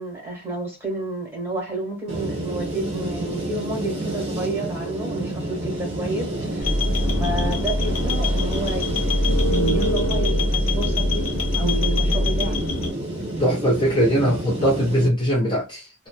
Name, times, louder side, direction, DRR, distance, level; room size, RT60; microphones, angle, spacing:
voice 1, 0.0-6.7 7.2-8.9 9.2-11.3 11.5-12.6, right 2 dB, 10° right, 1.3 m, -30 dB
sound 1, 2.1-15.1, right 1 dB, 30° right, 1.1 m, -30 dB
sound 2, 6.6-12.9, left 1 dB, 75° left, 1.0 m, -22 dB
voice 2, 13.4-16.1, equal, 20° left, 0.6 m, -21 dB
2.9 x 2.1 x 2.3 m
head